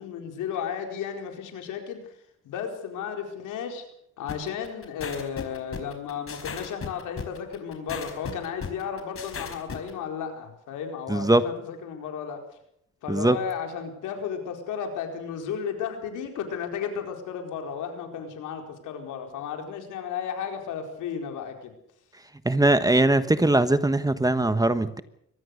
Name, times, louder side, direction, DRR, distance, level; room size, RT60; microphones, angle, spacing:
voice 1, 0.0-2.0 2.4-3.8 4.2-12.4 13.0-21.7, left 7 dB, 85° left, 4 dB, 4.6 m, -34 dB
sound 1, 4.3-9.9, left 6 dB, 45° left, 4.6 m, -36 dB
voice 2, 11.1-11.4 13.1-13.4 22.4-25.0, right 2 dB, 10° right, 12 dB, 1.3 m, -21 dB
24.0 x 19.5 x 6.6 m, 0.72 s
cardioid pair, 90°, 30 cm